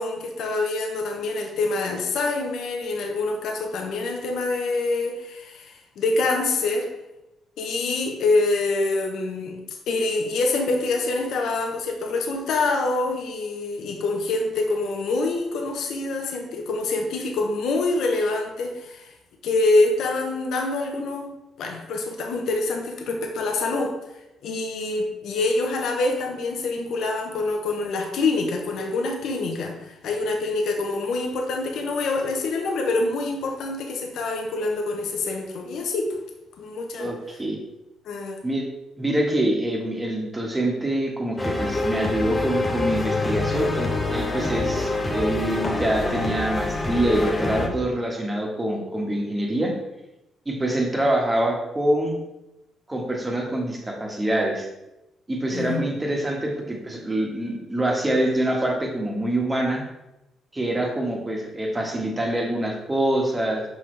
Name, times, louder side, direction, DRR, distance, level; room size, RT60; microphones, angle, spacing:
voice 1, 0.0-6.9 7.6-19.1 19.4-21.3 21.6-23.9 24.4-36.1 36.6-37.1 38.1-38.4 55.5-55.8, left 3 dB, 75° left, 2 dB, 0.9 m, -25 dB
voice 2, 37.0-37.6 38.4-38.7 39.0-49.7 50.4-52.2 52.9-54.7 55.3-59.8 60.5-63.6, right 1 dB, 20° right, 0 dB, 1.6 m, -25 dB
sound 1, 41.4-47.7, left 2 dB, 15° left, 1.0 m, -26 dB
6.3 x 5.5 x 3.3 m, 0.93 s
cardioid pair, 90°, 0 cm